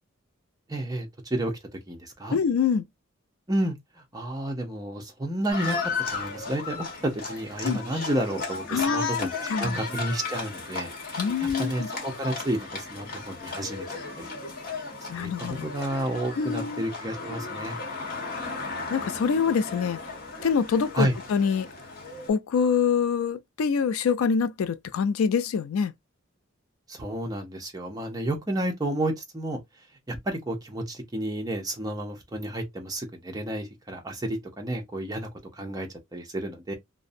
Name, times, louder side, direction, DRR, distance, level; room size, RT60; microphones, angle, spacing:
voice 1, 0.7-1.5 1.9-2.4 3.5-3.8 4.1-5.8 6.1-13.9 14.2-14.3 15.1-15.3 15.6-17.8 21.0-21.1 26.9-29.6 30.1-36.7, right 1 dB, 20° right, 0.6 m, -31 dB
voice 2, 2.3-2.8 7.6-7.8 8.7-9.1 9.5-9.8 11.2-11.9 15.1-15.7 16.4-16.8 18.9-20.0 20.4-21.7 22.3-25.9, left 6 dB, 90° left, 0.4 m, -25 dB
Livestock farm animals working animals, 5.5-22.3, left 4 dB, 45° left, 1.0 m, -35 dB
2.5 x 2.0 x 2.5 m
head